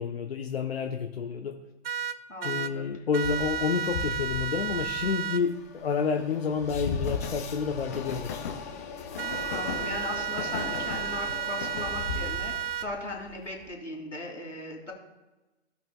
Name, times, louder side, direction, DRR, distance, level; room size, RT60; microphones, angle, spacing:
voice 1, 0.0-1.6 2.4-8.5, left 6 dB, 60° left, 3 dB, 0.8 m, -29 dB
sound 1, 1.8-2.7 3.1-5.4 9.2-12.9, right 8 dB, 55° right, 0.5 m, -32 dB
voice 2, 2.3-2.9 9.2-14.9, left 2 dB, 90° left, -1 dB, 2.5 m, -38 dB
Train, 3.2-13.6, left 5 dB, 15° left, 0.4 m, -37 dB
16.5 x 5.9 x 2.2 m, 1.1 s
figure-of-eight pair, 120°, 35 cm